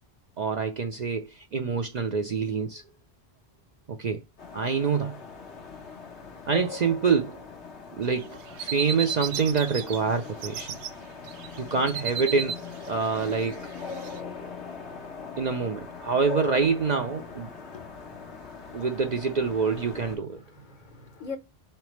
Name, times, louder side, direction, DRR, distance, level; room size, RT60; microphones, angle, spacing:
voice 1, 0.4-2.8 4.0-4.2 4.5-5.2 6.5-7.4 8.0-10.7 11.6-12.6 12.9-13.6 15.4-17.5 18.7-20.4, right 5 dB, 55° right, 0.5 m, -26 dB
sound 1, 4.4-20.2, left 4 dB, 80° left, 1.3 m, -41 dB
sound 2, 8.0-10.0 10.3-10.9 11.2-14.2, right 8 dB, 85° right, 0.9 m, -35 dB
voice 2, 17.5-18.8 20.5-21.4, left 5 dB, 50° left, 0.8 m, -43 dB
3.9 x 3.3 x 3.0 m
omnidirectional pair, 1.1 m